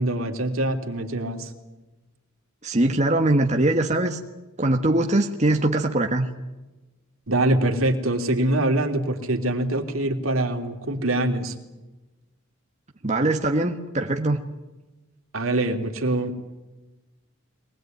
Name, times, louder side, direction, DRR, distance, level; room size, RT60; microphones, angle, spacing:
voice 1, 0.0-1.5 7.3-11.5 15.3-16.3, right 1 dB, 70° right, 5 dB, 3.1 m, -24 dB
voice 2, 2.6-4.2 4.6-6.3 13.0-14.4, right 1 dB, 35° right, 2 dB, 1.5 m, -22 dB
23.5 x 20.0 x 9.4 m, 1.1 s
head